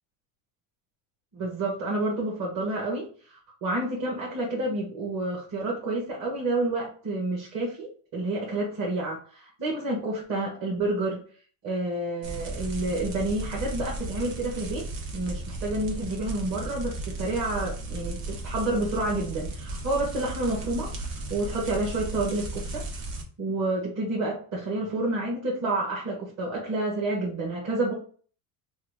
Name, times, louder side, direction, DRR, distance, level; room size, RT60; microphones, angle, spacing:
voice 1, 1.3-11.2 11.6-14.9 15.1-22.8 23.4-27.9, right 2 dB, 35° right, -4 dB, 1.1 m, -29 dB
sound 1, 12.2-23.2, right 2 dB, 65° right, 1.2 m, -35 dB
2.9 x 2.4 x 3.4 m, 0.43 s
supercardioid pair, 105°, 47 cm